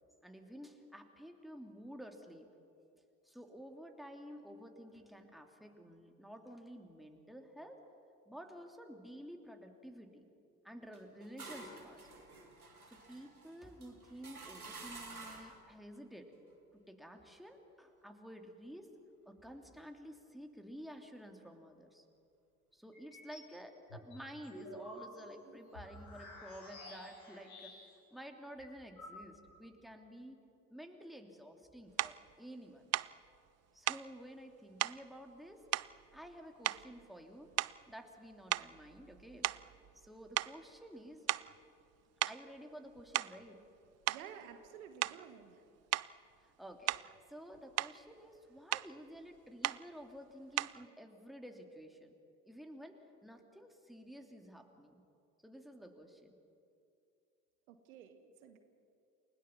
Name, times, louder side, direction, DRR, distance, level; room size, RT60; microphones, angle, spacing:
voice 1, 0.2-2.5 3.2-7.8 8.3-10.3 10.6-12.2 12.9-16.3 16.7-18.9 19.2-22.0 22.7-30.4 30.7-32.8 33.7-35.6 36.1-37.5 37.9-39.5 39.9-41.3 42.2-43.6 46.4-52.1 52.4-55.0 55.4-56.4, equal, ahead, 3 dB, 3.1 m, -52 dB
sound 1, 10.9-15.6, right 3 dB, 90° right, 1.9 m, -51 dB
sound 2, 22.9-23.5 23.9-28.1 28.3-28.4 28.6-29.6, left 1 dB, 80° left, 7.6 m, -51 dB
sound 3, 32.0-32.2 32.9-33.1 33.9-34.1 34.8-35.0 35.7-36.3 36.6-37.0 37.5-37.9 38.5-40.1 40.3-40.6 41.3-41.5 42.2-42.4 43.0-43.4 44.1-44.3 45.0-45.3 45.9-46.1 46.9-47.2 47.5-48.0 48.7-48.9 49.6-49.9 50.6-50.8, right 15 dB, 40° right, 0.5 m, -36 dB
voice 2, 44.1-45.6 57.7-58.6, right 8 dB, 75° right, 7 dB, 1.5 m, -52 dB
29.0 x 17.5 x 7.3 m, 2.5 s
figure-of-eight pair, 45°, 43 cm